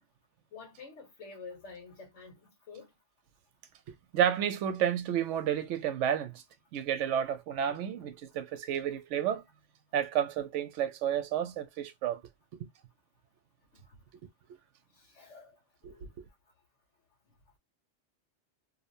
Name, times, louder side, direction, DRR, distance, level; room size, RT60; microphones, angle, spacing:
voice 1, 0.5-2.9 14.9-15.6 15.9-16.1, left 4 dB, 85° left, 1.3 m, -48 dB
voice 2, 3.9-6.4 6.7-9.4 9.9-12.2 15.8-16.3, right 9 dB, 90° right, 0.9 m, -31 dB
2.7 x 2.1 x 2.6 m
omnidirectional pair, 1.2 m